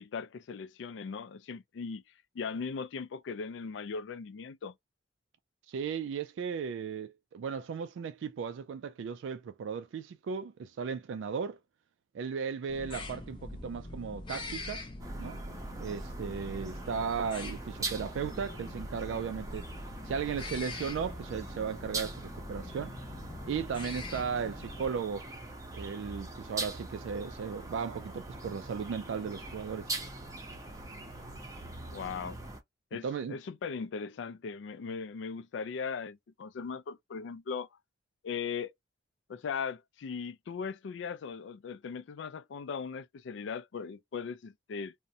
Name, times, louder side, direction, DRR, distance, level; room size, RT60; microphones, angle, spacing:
voice 1, 0.0-2.0 2.3-4.7 31.9-32.4 32.9-37.7 38.2-38.7 39.3-44.9, left 5 dB, 75° left, 0.4 m, -38 dB
voice 2, 5.7-11.6 12.1-14.8 15.2-15.4 15.8-19.7 20.0-23.0 23.5-25.3 25.7-29.9 33.0-33.3, right 6 dB, 80° right, 0.3 m, -36 dB
sound 1, 12.7-24.9, left 2 dB, 25° left, 0.6 m, -43 dB
sound 2, 15.0-32.6, right 2 dB, 20° right, 0.6 m, -42 dB
2.4 x 2.1 x 2.6 m
head